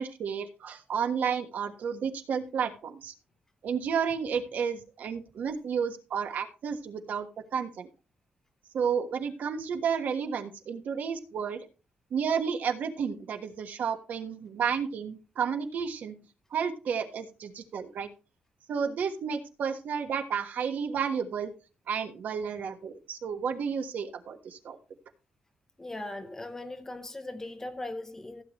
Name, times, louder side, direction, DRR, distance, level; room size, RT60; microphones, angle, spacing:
voice 1, 0.0-3.1 3.6-7.3 7.5-7.9 8.7-11.6 12.1-16.2 16.5-18.1 18.7-21.5 21.9-24.8, right 7 dB, 60° right, 1.4 m, -31 dB
voice 2, 25.8-28.4, left 2 dB, 15° left, 0.9 m, -39 dB
15.5 x 8.1 x 3.1 m
wide cardioid pair, 175°, 3 cm